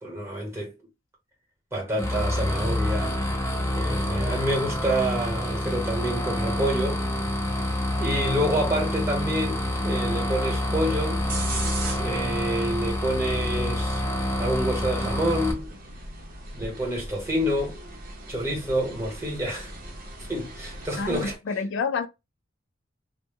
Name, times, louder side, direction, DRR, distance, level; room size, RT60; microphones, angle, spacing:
voice 1, 0.0-0.7 1.7-3.2 3.7-7.0 8.0-11.2 12.0-14.0 14.4-15.7 16.5-17.8 18.3-19.7 20.3-21.3, right 1 dB, 15° right, 1.0 m, -28 dB
sound 1, 2.0-15.5, left 1 dB, 15° left, 0.7 m, -27 dB
sound 2, 11.2-21.4, right 2 dB, 45° right, 0.7 m, -39 dB
voice 2, 21.0-22.1, left 5 dB, 65° left, 0.3 m, -28 dB
2.1 x 2.0 x 3.4 m
head